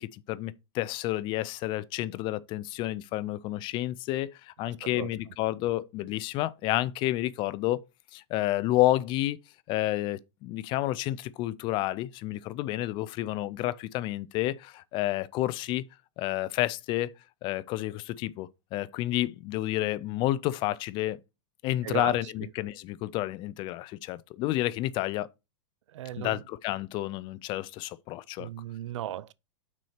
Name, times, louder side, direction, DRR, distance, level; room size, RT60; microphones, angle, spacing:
voice 1, 0.0-7.8 8.1-9.4 9.7-15.8 16.2-17.1 17.4-21.2 21.6-25.3 26.2-28.5, left 16 dB, 30° left, 0.4 m, -30 dB
voice 2, 21.8-22.5 25.9-26.4 28.4-29.3, right 12 dB, 80° right, 0.5 m, -36 dB
6.1 x 4.4 x 5.6 m
supercardioid pair, 145°, 15 cm